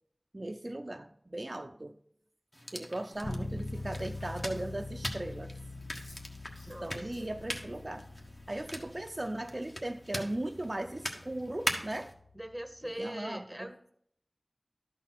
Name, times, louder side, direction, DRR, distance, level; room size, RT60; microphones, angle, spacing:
voice 1, 0.3-2.0 2.7-5.5 6.7-8.1 8.5-12.1 13.0-13.7, right 1 dB, 50° right, 0.4 m, -38 dB
sound 1, 2.5-12.1, equal, 35° left, 1.3 m, -41 dB
Chewing mastication, 3.1-8.9, equal, 85° left, 1.8 m, -58 dB
Bass guitar, 3.2-12.9, left 2 dB, 55° left, 0.7 m, -44 dB
voice 2, 6.7-7.3 12.3-13.9, right 1 dB, 5° right, 0.9 m, -42 dB
12.5 x 4.2 x 5.9 m
wide cardioid pair, 45°, 0 cm